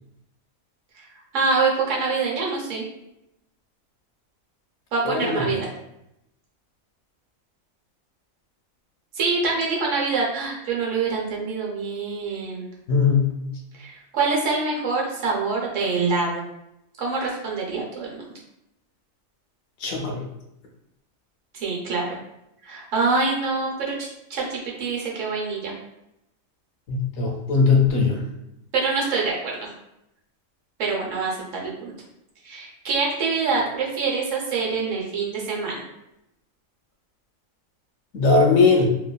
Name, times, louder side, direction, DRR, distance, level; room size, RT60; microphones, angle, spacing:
voice 1, 1.3-2.8 4.9-5.7 9.2-12.6 13.7-16.4 17.0-18.3 21.5-22.2 22.6-25.7 28.7-29.7 30.8-31.9 32.4-35.8, right 4 dB, 70° right, -3 dB, 1.0 m, -25 dB
voice 2, 5.0-5.4 12.9-13.3 19.8-20.2 26.9-28.2 38.1-38.9, left 4 dB, 80° left, 0 dB, 1.0 m, -19 dB
2.9 x 2.3 x 2.2 m, 0.85 s
omnidirectional pair, 1.4 m